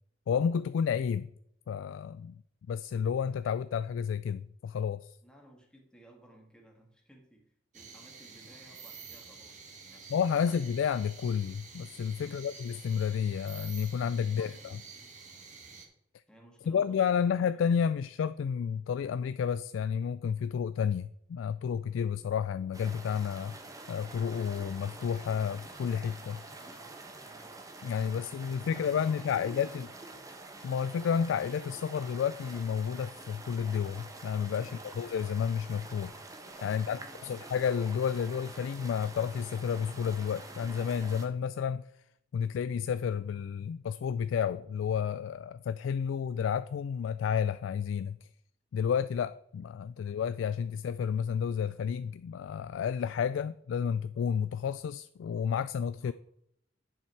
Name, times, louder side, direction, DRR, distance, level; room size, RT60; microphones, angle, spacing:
voice 1, 0.3-1.3 1.7-2.4 2.7-5.2 10.1-14.8 16.7-23.6 23.9-26.4 27.8-29.9 30.6-36.1 36.6-41.9 42.3-48.3 48.7-56.1, left 7 dB, 80° left, 0.3 m, -31 dB
voice 2, 5.2-10.6 12.2-12.5 14.1-15.2 16.3-17.6 26.6-27.6 28.2-29.8 34.6-34.8 36.7-37.5 56.0-56.1, right 1 dB, 5° left, 1.8 m, -58 dB
sound 1, 7.7-15.9, right 5 dB, 40° right, 1.5 m, -49 dB
sound 2, 22.7-41.3, right 2 dB, 20° right, 1.0 m, -47 dB
9.9 x 5.9 x 4.5 m
head